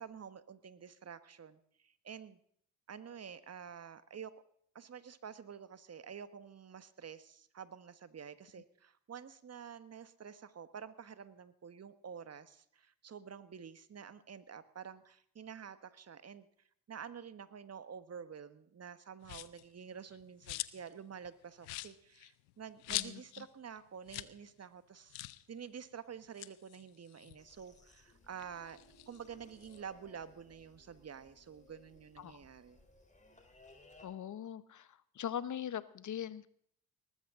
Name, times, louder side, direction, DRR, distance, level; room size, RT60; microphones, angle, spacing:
voice 1, 0.0-2.4 2.9-4.3 4.7-16.5 16.9-25.2 25.5-28.8 29.1-32.8, right 7 dB, 40° right, 13 dB, 1.4 m, -49 dB
sound 1, 19.2-19.7 20.1-20.9 21.2-21.3 21.6-23.5 23.8-23.9 24.1-24.4 24.6-24.7 25.1-25.4 26.2-27.9 28.3-29.8, left 20 dB, 85° left, 0.7 m, -43 dB
voice 2, 22.9-23.2 32.2-32.4 34.0-34.9 35.2-36.5, left 9 dB, 50° left, 16 dB, 1.1 m, -41 dB
sound 2, 27.4-34.1, left 1 dB, 20° left, 3.9 m, -63 dB
19.5 x 14.0 x 3.8 m, 0.64 s
supercardioid pair, 60°, 38 cm